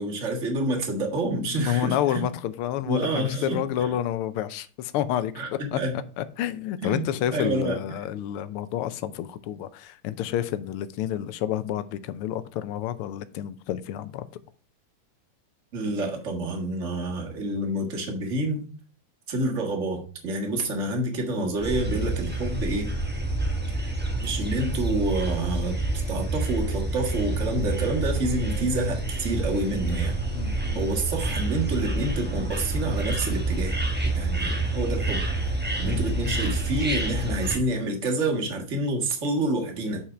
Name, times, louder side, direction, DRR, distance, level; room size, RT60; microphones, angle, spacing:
voice 1, 0.0-2.2 2.9-3.9 5.4-6.0 6.8-7.0 7.3-7.8 15.7-18.6 19.3-22.9 23.7-25.8 26.1-30.1 30.7-33.8 34.1-35.2 35.8-40.0, right 2 dB, 35° right, 0 dB, 1.8 m, -28 dB
voice 2, 1.5-5.8 6.2-14.2 21.4-21.5 30.3-30.8 35.8-36.1, left 11 dB, 90° left, 13 dB, 1.6 m, -29 dB
sound 1, 21.6-37.6, right 2 dB, 15° right, 0.3 m, -28 dB
5.8 x 5.7 x 4.8 m, 0.41 s
omnidirectional pair, 2.4 m